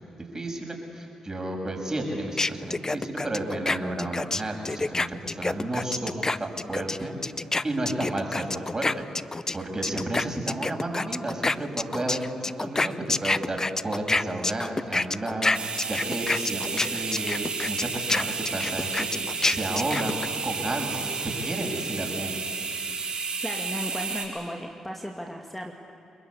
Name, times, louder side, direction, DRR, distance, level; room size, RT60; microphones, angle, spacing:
voice 1, 0.3-7.2 7.6-9.1 9.5-19.1 19.4-22.4, right 1 dB, 30° right, 2 dB, 6.9 m, -32 dB
sound 1, 2.4-9.6 9.8-20.3, left 3 dB, 25° left, 0.6 m, -27 dB
sound 2, 15.5-24.3, right 4 dB, 55° right, 5.7 m, -32 dB
voice 2, 23.4-25.7, equal, 10° left, 1 dB, 2.4 m, -35 dB
29.5 x 21.0 x 8.5 m, 2.7 s
hypercardioid pair, 45°, 2 cm